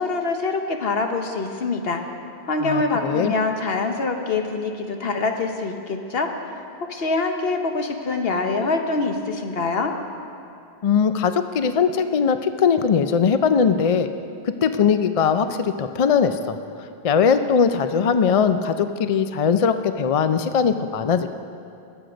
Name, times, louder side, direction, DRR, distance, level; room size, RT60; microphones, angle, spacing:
voice 1, 0.0-2.0 2.5-6.3 6.9-9.9, left 3 dB, 65° left, 4 dB, 1.2 m, -24 dB
voice 2, 2.6-3.3 10.8-14.1 14.6-16.6 17.0-21.3, left 6 dB, 50° left, 9 dB, 0.4 m, -20 dB
21.0 x 7.9 x 5.1 m, 2.7 s
omnidirectional pair, 1.1 m